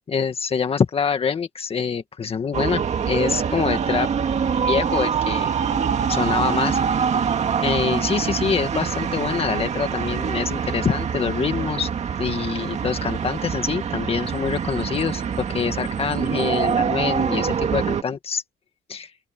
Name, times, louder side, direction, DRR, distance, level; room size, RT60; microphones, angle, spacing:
voice 1, 0.1-4.1 4.5-5.5 6.1-6.8 7.6-11.9 12.2-18.4 18.9-19.1, left 6 dB, 35° left, 1.8 m, -25 dB
sound 1, 2.5-18.0, right 7 dB, 40° right, 2.0 m, -24 dB
open air
cardioid pair, 140°, 18 cm